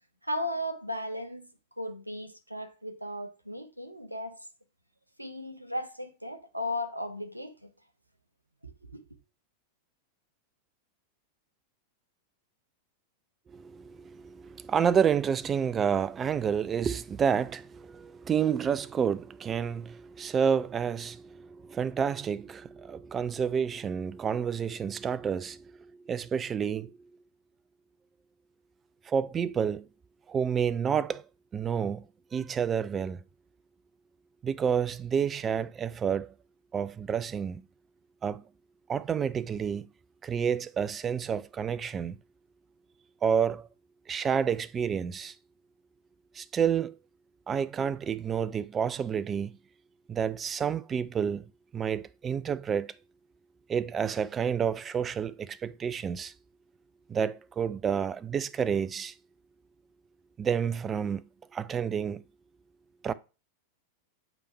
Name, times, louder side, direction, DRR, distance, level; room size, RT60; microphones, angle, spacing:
voice 1, 0.2-1.5 1.8-4.4 5.2-7.7 8.6-9.0, left 1 dB, 85° right, 0.6 m, -36 dB
voice 2, 13.5-27.1 29.1-29.9 30.3-31.2 31.5-32.0 32.3-33.2 34.4-36.3 36.7-37.6 38.2-38.4 38.9-39.8 40.2-42.2 43.2-43.7 44.1-45.3 46.3-46.9 47.5-49.6 50.1-51.4 51.7-52.9 53.7-56.3 57.1-59.1 60.4-61.2 61.5-62.2 63.0-63.1, right 7 dB, 20° right, 0.3 m, -29 dB
7.0 x 3.4 x 4.3 m
figure-of-eight pair, 90°, 0 cm